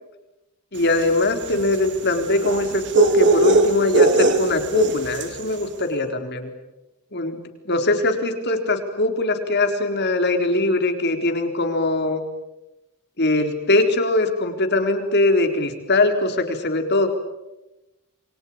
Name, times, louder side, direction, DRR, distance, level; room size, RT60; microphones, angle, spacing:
voice 1, 0.7-6.5 7.1-12.2 13.2-17.1, left 2 dB, 50° left, 6 dB, 4.1 m, -21 dB
sound 1, 0.9-5.4, right 3 dB, 55° right, 2.8 m, -20 dB
28.5 x 23.5 x 8.8 m, 0.97 s
head